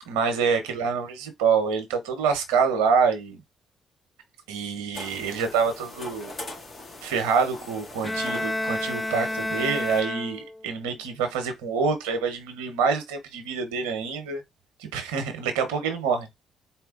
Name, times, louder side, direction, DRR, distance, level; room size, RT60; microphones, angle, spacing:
voice 1, 0.1-3.4 4.5-6.3 7.0-14.4 14.8-16.3, right 5 dB, 80° right, 1.0 m, -26 dB
sound 1, 4.9-10.0, left 2 dB, 55° left, 2.3 m, -42 dB
Bowed string instrument, 8.0-10.8, left 1 dB, 15° left, 0.7 m, -30 dB
4.4 x 2.2 x 3.8 m
hypercardioid pair, 45°, 0 cm